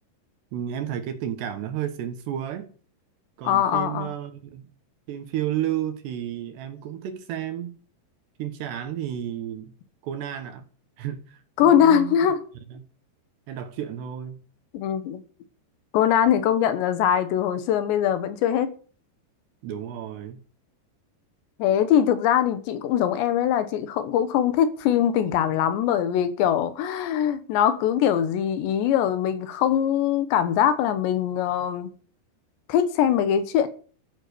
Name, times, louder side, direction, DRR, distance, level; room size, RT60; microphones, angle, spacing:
voice 1, 0.5-2.7 3.4-4.7 5.1-7.8 8.4-9.7 10.0-10.6 11.0-12.3 12.7-12.9 13.5-14.4 19.6-20.4, right 10 dB, 70° right, 3.4 m, -32 dB
voice 2, 3.5-4.1 11.6-12.4 14.7-15.2 15.9-18.8 21.6-31.9 32.7-33.7, left 9 dB, 75° left, 3.5 m, -22 dB
13.5 x 10.0 x 6.9 m
omnidirectional pair, 5.3 m